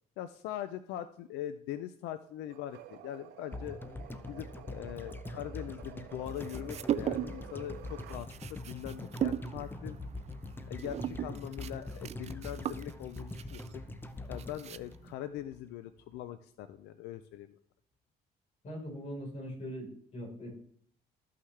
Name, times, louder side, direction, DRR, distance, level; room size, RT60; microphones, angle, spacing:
voice 1, 0.2-3.8 4.3-10.0 10.7-13.8 14.3-17.5, left 12 dB, 85° left, 12 dB, 0.5 m, -42 dB
sound 1, 2.5-8.3, right 11 dB, 80° right, 0.7 m, -51 dB
sound 2, 3.5-15.7 16.0-16.1, left 2 dB, 10° left, 0.6 m, -43 dB
sound 3, 6.3-7.5 7.8-15.1, right 10 dB, 40° right, 0.4 m, -38 dB
voice 2, 18.6-20.5, equal, 45° left, -1 dB, 4.0 m, -41 dB
13.0 x 5.8 x 3.2 m, 0.63 s
cardioid pair, 110°, 17 cm